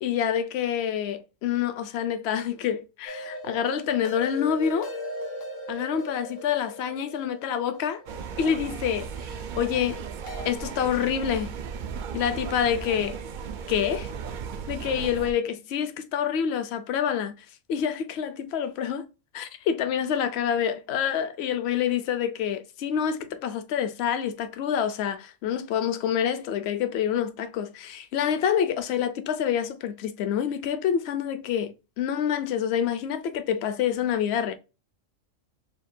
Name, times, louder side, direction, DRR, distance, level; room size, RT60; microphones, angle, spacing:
voice 1, 0.0-4.9 5.7-8.0 8.4-9.1 9.6-10.0 10.4-11.5 12.1-13.2 13.7-14.1 14.7-17.3 17.7-19.1 19.3-34.5, left 8 dB, 60° left, 0.8 m, -27 dB
sound 1, 3.1-9.1 10.3-10.5, left 2 dB, 90° left, 1.3 m, -38 dB
sound 2, 8.1-15.3, right 6 dB, 65° right, 0.5 m, -36 dB
6.5 x 2.2 x 2.6 m
omnidirectional pair, 1.3 m